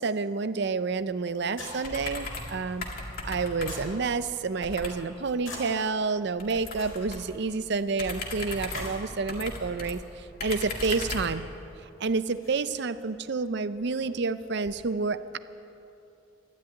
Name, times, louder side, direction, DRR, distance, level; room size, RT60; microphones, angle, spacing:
voice 1, 0.0-2.9 3.2-11.5 12.0-15.4, right 4 dB, 55° right, 13 dB, 0.5 m, -29 dB
sound 1, 0.7-14.9, left 2 dB, 80° left, 4.2 m, -49 dB
sound 2, 1.8-2.6 2.8-4.0 4.6-5.0 6.4-7.3 7.9-9.9 10.4-11.4, left 2 dB, 45° left, 2.0 m, -36 dB
12.5 x 11.5 x 9.2 m, 2.8 s
head